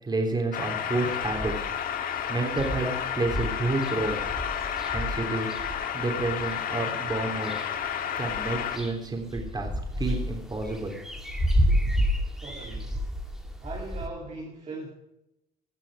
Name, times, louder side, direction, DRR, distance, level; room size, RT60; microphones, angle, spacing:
voice 1, 0.0-1.7 2.3-2.9 3.1-4.2 4.8-5.5 5.9-7.5 8.2-10.9, right 2 dB, 25° right, 3.4 m, -29 dB
sound 1, 0.5-8.8, left 8 dB, 60° left, 1.5 m, -31 dB
sound 2, 1.2-1.8 2.2-2.3 2.5-6.5 7.1-7.9 8.2-14.1, equal, ahead, 1.9 m, -30 dB
voice 2, 12.4-13.0 13.6-14.9, right 3 dB, 40° right, 2.4 m, -39 dB
17.0 x 6.3 x 4.9 m
cardioid pair, 110°, 17 cm